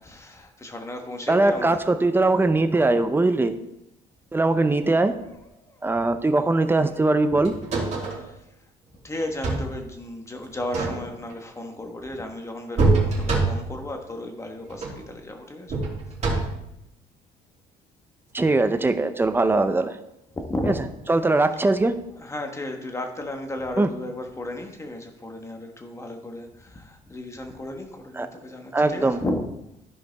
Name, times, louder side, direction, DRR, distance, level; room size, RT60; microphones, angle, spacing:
voice 1, 0.0-1.8 5.6-5.8 7.3-7.4 8.0-8.4 9.0-15.7 20.3-20.8 21.6-21.7 22.2-29.4, left 1 dB, 15° left, 4 dB, 1.3 m, -34 dB
voice 2, 1.3-3.6 4.3-5.2 5.8-7.6 18.3-20.0 20.6-22.0 23.8-23.9 28.1-28.3 28.7-29.3, right 2 dB, 15° right, 10 dB, 0.6 m, -21 dB
sound 1, 7.4-8.3 9.2-9.8 10.6-11.3 12.8-13.8 14.7-15.1 15.7-16.7 18.4-18.5, right 3 dB, 40° right, 2.6 m, -25 dB
13.5 x 5.2 x 3.5 m, 0.85 s
cardioid pair, 110°, 17 cm